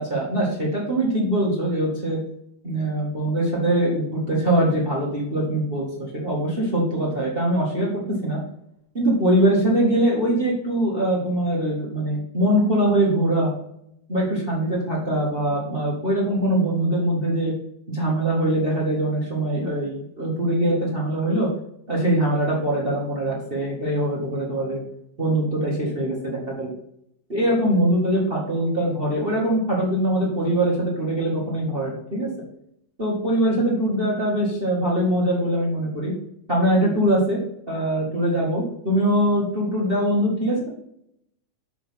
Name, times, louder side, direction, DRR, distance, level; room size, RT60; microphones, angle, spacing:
voice 1, 0.0-2.2 2.6-8.4 8.9-13.5 14.1-17.5 17.9-21.5 21.9-24.8 25.2-26.7 27.3-32.3 33.0-36.1 36.5-37.4 37.7-40.7, right 1 dB, 20° right, -4 dB, 1.6 m, -22 dB
7.1 x 4.3 x 5.8 m, 0.75 s
omnidirectional pair, 3.5 m